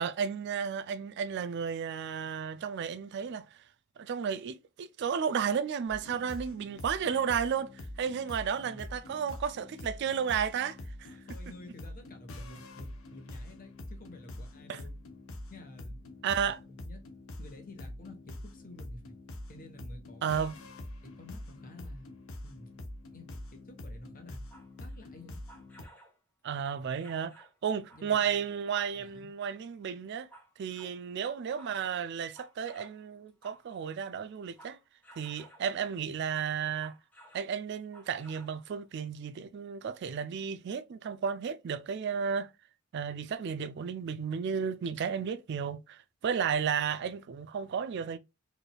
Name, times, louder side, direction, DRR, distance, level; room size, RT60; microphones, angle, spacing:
voice 1, 0.0-3.5 4.0-11.1 14.7-14.8 16.2-16.6 20.2-20.5 26.4-30.3 30.6-34.8 35.2-36.9 37.3-42.5 42.9-48.2, right 7 dB, 50° right, 0.3 m, -33 dB
sound 1, 5.9-25.8, left 1 dB, 75° left, 0.8 m, -45 dB
voice 2, 8.6-8.9 11.1-15.0 15.5-16.1 16.4-17.0 17.4-19.1 19.5-20.4 21.0-22.1 22.4-22.8 23.1-24.4 24.8-25.4 27.9-28.4 28.9-29.3, left 2 dB, 40° left, 1.0 m, -51 dB
sound 2, 24.4-26.2 26.6-27.6 27.9-29.3 29.8-31.0 31.3-33.9 34.3-35.8 36.6-37.5 37.8-38.6 39.0-39.1, right 1 dB, 5° left, 1.1 m, -57 dB
4.1 x 3.3 x 2.2 m
head